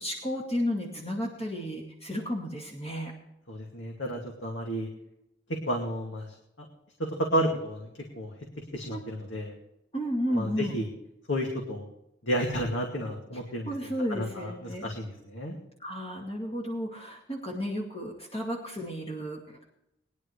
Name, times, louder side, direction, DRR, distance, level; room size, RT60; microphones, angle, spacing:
voice 1, 0.0-3.1 8.9-9.0 9.9-10.7 13.6-14.9 15.8-19.7, equal, 35° left, -2 dB, 2.3 m, -33 dB
voice 2, 3.5-4.9 5.7-6.3 7.0-7.9 8.1-8.3 8.7-9.5 10.3-10.9 11.3-11.9 12.3-13.7 14.1-15.6, equal, 75° left, 0 dB, 2.4 m, -31 dB
21.0 x 11.0 x 3.3 m, 0.83 s
head